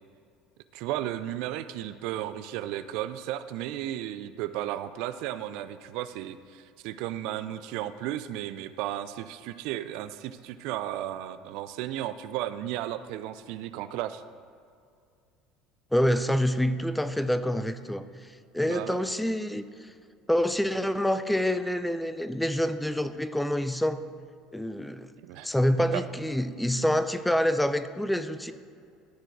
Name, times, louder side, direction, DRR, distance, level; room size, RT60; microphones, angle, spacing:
voice 1, 0.7-14.2 18.6-19.0 25.2-25.5 25.9-26.0, right 13 dB, 65° right, 12 dB, 0.3 m, -34 dB
voice 2, 15.9-19.9 20.3-24.0 24.5-25.1 25.4-28.5, equal, 5° left, 12 dB, 0.5 m, -27 dB
13.5 x 4.5 x 4.6 m, 2.3 s
hypercardioid pair, 70°, 0 cm